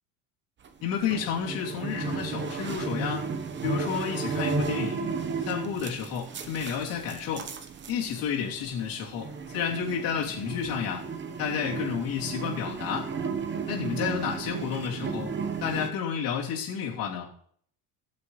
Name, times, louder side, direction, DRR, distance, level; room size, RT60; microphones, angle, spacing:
sound 1, 0.6-15.9, right 5 dB, 30° right, 1.1 m, -34 dB
voice 1, 0.8-3.3 3.6-5.2 5.5-7.4 7.9-11.0 11.4-13.1 13.7-15.3 15.6-17.3, left 7 dB, 65° left, -3 dB, 3.2 m, -31 dB
17.5 x 7.4 x 3.3 m, 0.62 s
cardioid pair, 120°, 38 cm